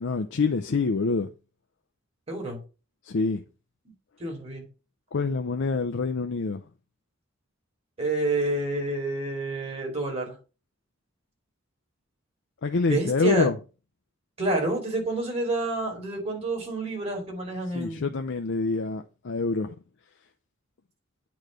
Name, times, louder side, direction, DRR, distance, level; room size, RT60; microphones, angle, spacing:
voice 1, 0.0-1.3 3.1-3.4 5.1-6.6 12.6-13.5 17.7-19.7, left 4 dB, 65° left, 0.5 m, -26 dB
voice 2, 2.3-2.6 4.2-4.6 8.0-10.4 12.9-13.5 14.4-18.1, right 2 dB, 30° right, 2.7 m, -28 dB
8.7 x 3.2 x 6.3 m
head